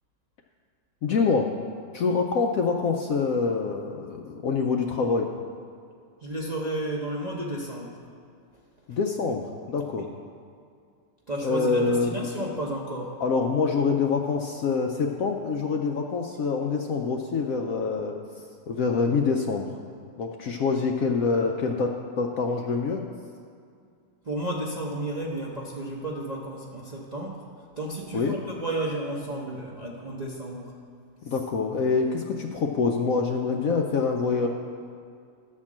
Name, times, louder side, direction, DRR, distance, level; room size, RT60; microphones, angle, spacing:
voice 1, 1.0-1.5 1.9-5.3 8.9-10.1 11.4-12.5 13.2-18.2 18.7-19.7 20.2-23.0 28.1-28.4 31.3-34.5, left 4 dB, 70° left, 2 dB, 0.8 m, -25 dB
voice 2, 6.2-8.0 8.9-9.0 11.3-13.2 24.2-27.4 27.8-30.7, right 1 dB, 40° right, -4 dB, 0.6 m, -32 dB
11.5 x 4.4 x 7.3 m, 2.3 s
omnidirectional pair, 1.9 m